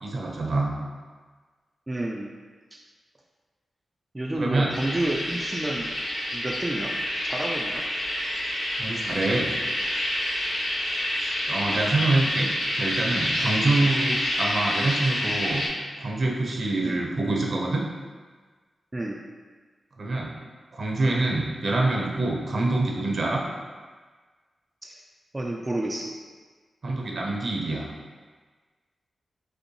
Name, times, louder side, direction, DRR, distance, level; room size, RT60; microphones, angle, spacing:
voice 1, 0.0-0.8 4.3-4.7 8.8-9.5 11.5-15.7 16.0-17.8 20.0-20.3 20.7-23.4 26.8-27.9, right 2 dB, 60° right, -2 dB, 0.7 m, -26 dB
voice 2, 1.9-2.3 2.7-2.8 4.1-5.9 6.3-6.9 7.2-7.9 11.7-11.9 13.7-13.8 16.8-17.0 18.9-19.2 24.8-25.0 25.3-26.1, right 1 dB, 25° right, -1 dB, 0.4 m, -30 dB
sound 1, 4.7-15.7, left 1 dB, 80° left, 0.9 m, -28 dB
5.1 x 2.1 x 3.1 m, 1.4 s
cardioid pair, 45°, 0 cm